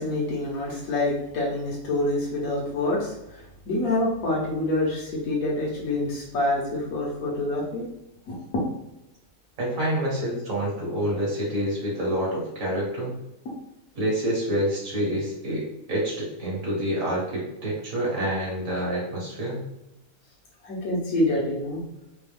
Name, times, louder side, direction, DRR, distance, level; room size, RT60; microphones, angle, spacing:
voice 1, 0.0-7.9 8.2-8.4 20.6-21.8, left 2 dB, 75° left, -4 dB, 1.5 m, -27 dB
voice 2, 9.6-13.2 14.0-19.6, right 1 dB, 70° right, -4 dB, 1.9 m, -27 dB
4.3 x 2.3 x 3.4 m, 0.89 s
omnidirectional pair, 1.5 m